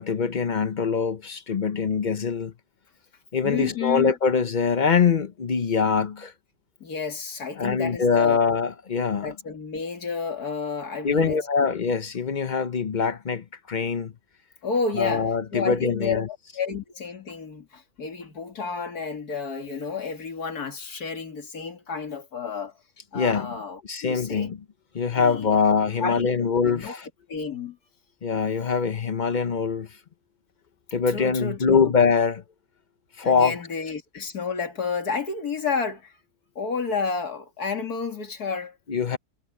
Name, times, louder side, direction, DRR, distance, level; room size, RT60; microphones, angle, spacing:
voice 1, 0.0-2.5 3.3-6.3 7.6-9.3 11.0-14.1 14.9-16.3 23.1-23.6 23.9-24.6 24.9-27.1 28.2-29.9 30.9-32.4 33.2-33.5 38.9-39.2, left 5 dB, 45° left, 0.6 m, -23 dB
voice 2, 3.4-4.1 6.8-8.4 9.2-11.7 14.6-22.8 23.1-24.5 25.2-25.6 26.0-27.0 27.3-27.8 30.9-31.9 33.2-36.1 36.6-38.7, left 5 dB, 75° left, 2.8 m, -31 dB
omnidirectional pair, 1.6 m